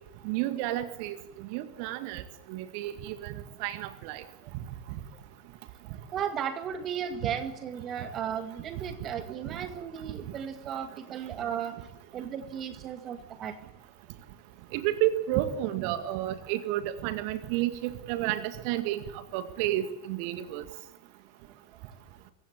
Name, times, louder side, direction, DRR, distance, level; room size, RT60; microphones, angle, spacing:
voice 1, 0.2-1.2 1.5-2.2 2.5-4.2 14.7-20.6, right 13 dB, 45° right, 9 dB, 2.0 m, -31 dB
voice 2, 6.1-11.8 12.1-13.6, right 8 dB, 30° right, 8 dB, 2.0 m, -35 dB
25.0 x 15.0 x 9.8 m, 0.95 s
figure-of-eight pair, 90°, 0 cm